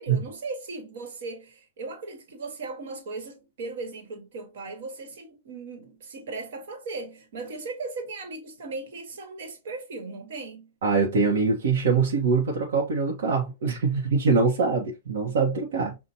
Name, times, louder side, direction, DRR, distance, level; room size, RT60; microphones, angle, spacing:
voice 1, 0.0-10.7, right 3 dB, 65° right, 1.4 m, -37 dB
voice 2, 10.8-16.0, right 4 dB, 80° right, 1.1 m, -23 dB
5.4 x 2.4 x 2.8 m
supercardioid pair, 165°, 0 cm